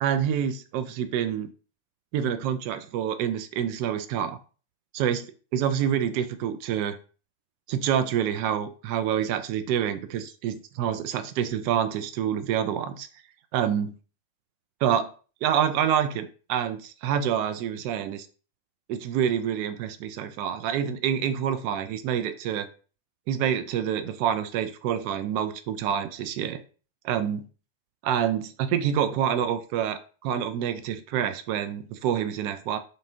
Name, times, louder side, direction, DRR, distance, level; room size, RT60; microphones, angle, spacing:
voice 1, 0.0-1.5 2.1-4.4 4.9-5.3 5.5-7.0 7.7-13.1 13.5-14.0 14.8-15.1 15.4-18.3 18.9-22.7 23.3-26.6 27.0-27.5 28.0-32.8, right 9 dB, 50° right, 0.3 m, -27 dB
2.5 x 2.4 x 2.8 m
figure-of-eight pair, 95°, 0 cm